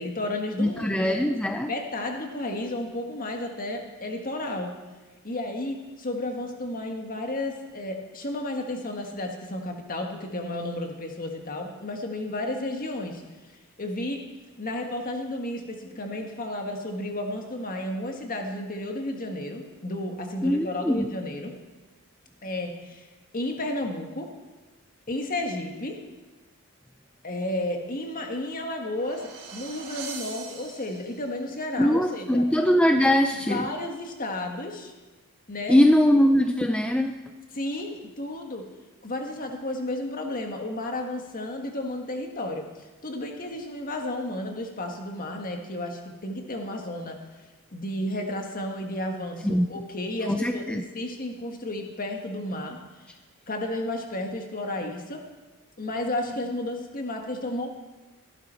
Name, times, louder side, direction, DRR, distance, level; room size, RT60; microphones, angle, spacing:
voice 1, 0.0-1.2 1.7-4.7 5.2-13.2 13.8-14.2 14.6-21.6 22.4-24.3 25.1-26.0 27.2-32.4 33.3-34.9 35.5-35.8 37.5-38.7 39.0-47.2 47.7-53.1 53.5-55.3 55.8-57.7, left 1 dB, 40° left, 3 dB, 1.6 m, -32 dB
voice 2, 0.6-1.7 20.4-21.1 31.8-33.7 35.7-37.2 49.4-49.7 50.3-50.8, left 1 dB, 5° left, 5 dB, 0.4 m, -21 dB
sound 1, 28.5-31.4, right 6 dB, 90° right, 2.6 m, -42 dB
15.0 x 11.5 x 4.4 m, 1.2 s
head